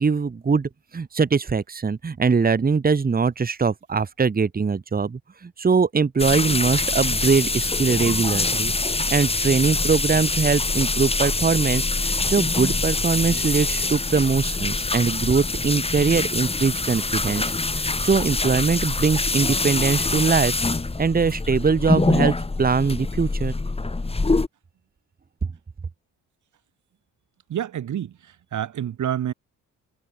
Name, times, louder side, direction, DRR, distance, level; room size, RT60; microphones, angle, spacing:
voice 1, 0.0-8.7 9.1-17.5 17.8-20.5 21.0-23.5, right 5 dB, 25° right, 1.6 m, -22 dB
sound 1, 6.2-24.5, left 3 dB, 20° left, 2.6 m, -24 dB
voice 2, 27.5-29.3, right 10 dB, 65° right, 2.0 m, -28 dB
cardioid pair, 110°, 32 cm